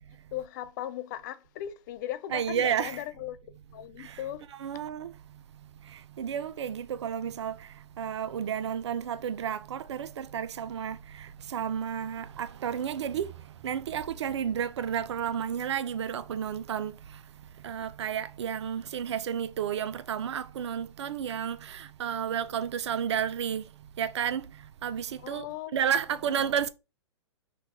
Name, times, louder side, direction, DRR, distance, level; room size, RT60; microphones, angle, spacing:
voice 1, 0.3-3.4 3.7-4.5 25.2-25.7, left 12 dB, 40° left, 0.4 m, -37 dB
voice 2, 2.3-3.0 4.6-5.1 6.2-7.5 8.0-11.0 11.5-13.3 13.6-16.9 17.6-23.6 24.0-24.4 24.8-25.4 25.7-26.7, right 8 dB, 65° right, 0.4 m, -31 dB
3.1 x 2.3 x 4.3 m
hypercardioid pair, 120°, 15 cm